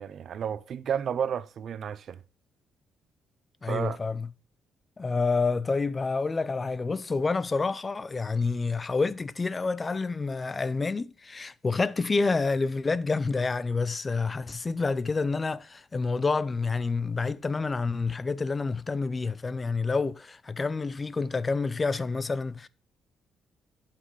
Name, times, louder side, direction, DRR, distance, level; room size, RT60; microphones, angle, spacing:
voice 1, 0.0-2.2 3.7-4.0, right 8 dB, 60° right, 0.5 m, -32 dB
voice 2, 3.6-4.3 5.0-22.7, left 4 dB, 30° left, 0.4 m, -28 dB
8.1 x 5.9 x 4.7 m
cardioid pair, 90°, 0 cm